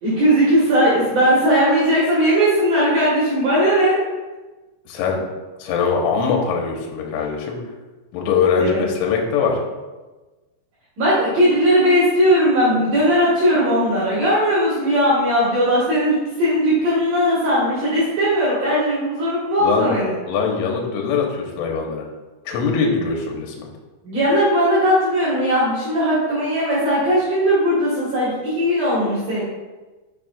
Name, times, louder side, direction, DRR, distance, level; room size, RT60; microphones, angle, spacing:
voice 1, 0.0-4.0 8.6-8.8 11.0-20.1 24.0-29.4, equal, 55° right, -8 dB, 3.0 m, -18 dB
voice 2, 4.9-5.2 5.6-7.6 8.1-9.6 19.6-19.9 20.3-22.1 22.5-23.7, left 5 dB, 85° left, 1 dB, 3.5 m, -22 dB
9.2 x 6.7 x 2.4 m, 1.2 s
omnidirectional pair, 5.5 m